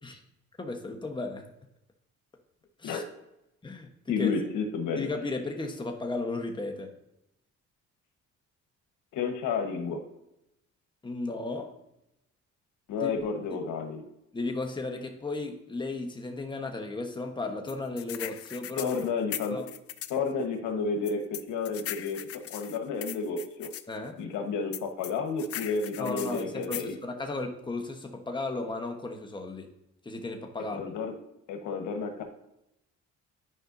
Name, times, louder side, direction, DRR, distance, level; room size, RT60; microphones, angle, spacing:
voice 1, 0.6-1.4 2.8-3.0 3.6-4.3 5.0-6.9 11.0-11.7 13.0-13.1 14.3-18.9 19.5-19.7 23.9-24.2 26.0-29.7 30.0-30.9, left 2 dB, 15° left, 3 dB, 1.2 m, -35 dB
voice 2, 4.1-5.1 9.1-10.0 12.9-14.0 18.8-19.6 20.1-23.7 24.2-27.0 30.7-31.1 31.5-32.2, left 5 dB, 90° left, 4 dB, 1.3 m, -31 dB
sound 1, 17.7-20.2 21.0-23.8 24.7-26.9, left 11 dB, 50° left, 0.5 m, -39 dB
10.0 x 5.3 x 2.7 m, 0.84 s
cardioid pair, 90°, 30 cm